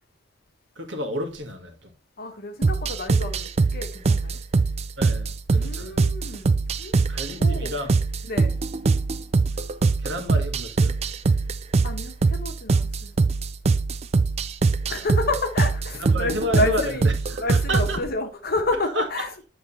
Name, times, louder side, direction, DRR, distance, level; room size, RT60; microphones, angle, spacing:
voice 1, 0.7-1.9 5.0-6.0 7.1-8.0 9.5-9.6 10.0-11.0 16.0-18.0 18.9-19.1, equal, 65° right, 1.5 m, -30 dB
voice 2, 2.2-4.4 5.5-7.0 7.4-7.7 8.2-8.6 11.8-13.1 14.9-17.1 17.4-19.5, left 2 dB, 50° left, 1.2 m, -30 dB
sound 1, 2.6-18.0, right 4 dB, 35° right, 0.3 m, -23 dB
8.8 x 3.5 x 4.1 m
head